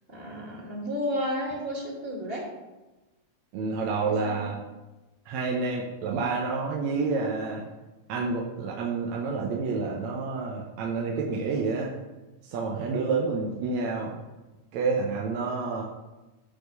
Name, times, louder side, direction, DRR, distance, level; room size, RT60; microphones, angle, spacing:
voice 1, 0.1-2.5 3.9-4.5, equal, 20° right, -1 dB, 1.9 m, -32 dB
voice 2, 3.5-4.6 5.3-7.6 8.1-11.9 12.4-14.1 14.7-15.8, right 4 dB, 70° right, -2 dB, 2.2 m, -29 dB
11.5 x 4.3 x 6.8 m, 1.1 s
omnidirectional pair, 3.5 m